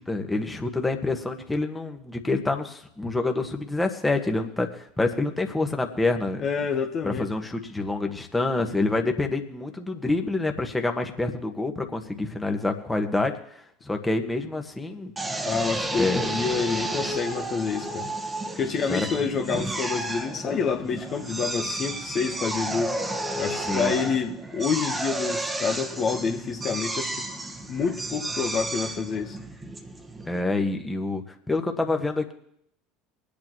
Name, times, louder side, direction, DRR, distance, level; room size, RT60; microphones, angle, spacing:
voice 1, 0.1-6.4 7.0-13.4 13.8-15.1 16.0-16.3 18.9-19.1 23.6-23.9 30.3-32.3, left 2 dB, 10° left, 4 dB, 1.4 m, -27 dB
voice 2, 6.4-7.3 15.4-18.1 18.5-23.0 23.4-27.2 27.7-29.4, left 6 dB, 40° left, 3 dB, 1.2 m, -28 dB
Drill, 15.2-30.4, right 2 dB, 20° right, 1.4 m, -32 dB
23.5 x 8.6 x 3.1 m, 0.72 s
hypercardioid pair, 75°, 0 cm